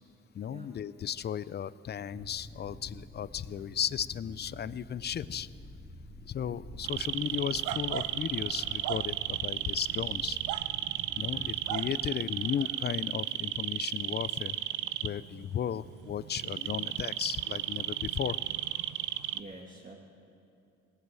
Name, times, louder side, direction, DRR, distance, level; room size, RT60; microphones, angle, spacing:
voice 1, 0.3-5.5 6.3-10.4 11.2-14.6 15.0-18.4, left 9 dB, 35° left, 18 dB, 0.4 m, -35 dB
sound 1, 2.1-11.8, equal, 5° left, 1.9 m, -49 dB
sound 2, 6.8-19.4, right 13 dB, 90° right, 0.6 m, -34 dB
voice 2, 19.3-19.9, right 2 dB, 30° right, -1 dB, 1.5 m, -47 dB
19.0 x 8.2 x 7.7 m, 2.7 s
cardioid pair, 90°, 30 cm